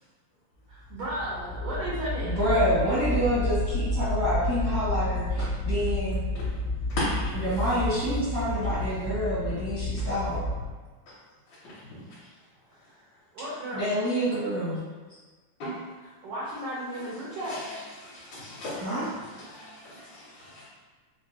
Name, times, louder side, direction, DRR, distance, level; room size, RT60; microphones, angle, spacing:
sound 1, 0.7-10.7, left 1 dB, 55° left, 1.2 m, -30 dB
voice 1, 0.7-2.4 12.0-12.1 13.3-14.0 16.0-17.9, equal, 75° right, -7 dB, 1.4 m, -35 dB
voice 2, 2.2-6.2 7.3-10.4 13.7-14.8 18.7-19.1, equal, 60° right, -14 dB, 1.0 m, -28 dB
voice 3, 7.0-7.3 11.6-11.7 15.6-15.7 17.4-17.7 18.0-19.1 19.5-20.6, left 1 dB, 70° left, -9 dB, 1.9 m, -35 dB
5.0 x 2.2 x 2.6 m, 1.3 s
omnidirectional pair, 3.6 m